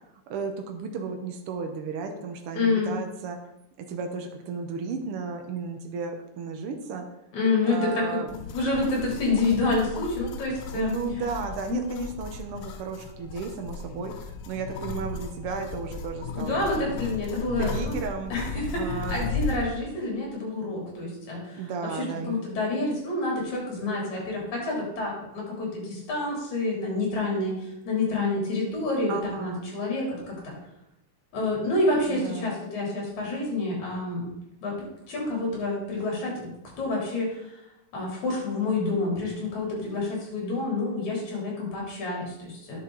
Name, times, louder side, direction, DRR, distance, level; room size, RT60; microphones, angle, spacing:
voice 1, 0.3-3.4 3.8-7.1 7.6-8.3 10.7-16.9 17.6-18.3 18.8-19.5 21.6-22.5 29.1-29.7 32.1-32.7, right 5 dB, 80° right, 5 dB, 1.2 m, -34 dB
voice 2, 2.5-2.9 7.3-8.0 8.4-10.9 11.7-12.0 16.4-17.9 18.3-21.6 21.9-30.5 31.3-34.3 34.6-34.7 35.1-36.5 36.8-37.6 37.9-42.8, left 2 dB, 60° left, -3 dB, 4.5 m, -28 dB
sound 1, 8.3-19.7, left 4 dB, 75° left, 2.2 m, -36 dB
10.0 x 7.1 x 3.9 m, 0.86 s
omnidirectional pair, 3.8 m